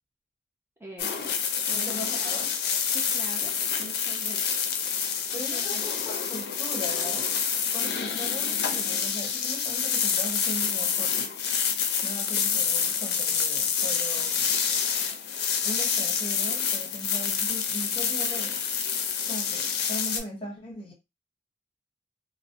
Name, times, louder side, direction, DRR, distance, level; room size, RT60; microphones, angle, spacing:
voice 1, 0.8-1.3 1.7-2.1 2.9-3.5 3.8-4.6 5.3-5.8, right 2 dB, 15° right, 0.5 m, -43 dB
sound 1, 1.0-20.2, left 7 dB, 65° left, 0.4 m, -27 dB
voice 2, 1.7-2.6 5.3-7.3 7.7-11.3 12.0-14.5 15.6-18.6 19.2-20.9, equal, 30° left, 0.8 m, -39 dB
2.4 x 2.0 x 2.5 m
head